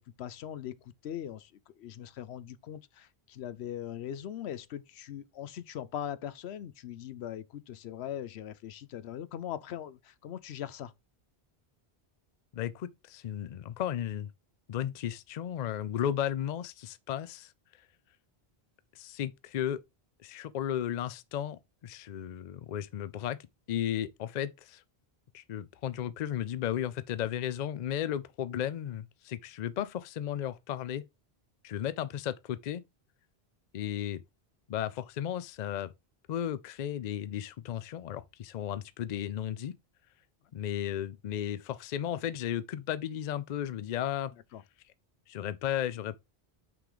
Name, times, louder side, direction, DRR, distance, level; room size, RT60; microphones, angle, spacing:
voice 1, 0.0-10.9 44.5-44.6, left 10 dB, 85° left, 0.9 m, -40 dB
voice 2, 12.5-14.3 14.7-17.5 19.0-19.8 20.2-23.4 23.7-24.8 25.3-31.1 31.6-32.8 33.7-34.2 34.7-35.9 36.3-39.7 40.5-44.3 45.3-46.2, left 10 dB, 55° left, 0.5 m, -34 dB
5.9 x 3.8 x 4.9 m
omnidirectional pair, 1.1 m